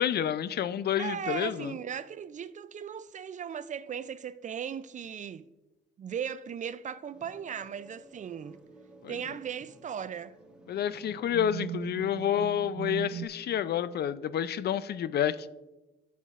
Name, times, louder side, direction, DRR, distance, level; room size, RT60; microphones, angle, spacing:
voice 1, 0.0-1.7 9.0-9.2 10.7-15.5, left 9 dB, 55° left, 0.4 m, -29 dB
voice 2, 1.0-5.5 6.0-8.6 9.1-10.3, right 8 dB, 40° right, 0.4 m, -37 dB
sound 1, 7.1-12.7, right 1 dB, 5° right, 1.1 m, -56 dB
sound 2, 8.7-9.0 9.7-9.8 10.7-13.3, right 11 dB, 55° right, 0.7 m, -39 dB
12.0 x 7.1 x 2.4 m
cardioid pair, 90°, 20 cm